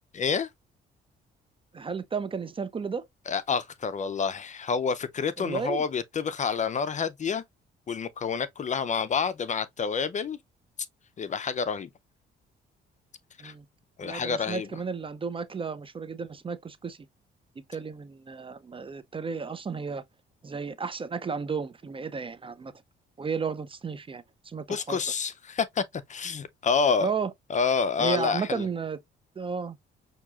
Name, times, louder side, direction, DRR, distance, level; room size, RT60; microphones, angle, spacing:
voice 1, 0.1-0.5 3.3-7.4 7.9-10.4 11.2-11.9 13.4-13.5 14.0-14.7 24.7-27.1 27.5-28.7, left 5 dB, 35° left, 0.5 m, -28 dB
voice 2, 1.7-3.1 5.4-5.8 13.4-13.7 14.0-17.0 17.7-20.0 20.4-22.7 23.2-25.0 27.0-27.3 28.0-29.0 29.4-29.8, right 5 dB, 25° right, 0.5 m, -33 dB
5.9 x 2.7 x 2.3 m
cardioid pair, 90°, 20 cm